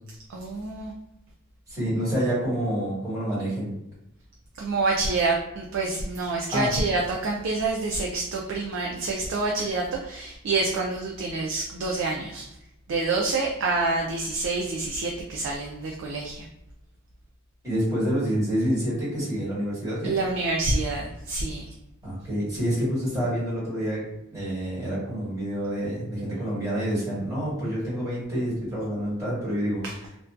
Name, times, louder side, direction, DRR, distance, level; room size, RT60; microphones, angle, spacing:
voice 1, 0.3-0.9 4.6-12.5 12.9-16.5 20.0-21.7 29.8-29.9, right 3 dB, 65° right, -1 dB, 0.3 m, -27 dB
voice 2, 1.7-3.7 6.5-6.7 17.6-20.1 22.0-24.0 24.3-29.8, equal, 15° right, -10 dB, 1.4 m, -27 dB
2.6 x 2.1 x 2.3 m, 0.84 s
head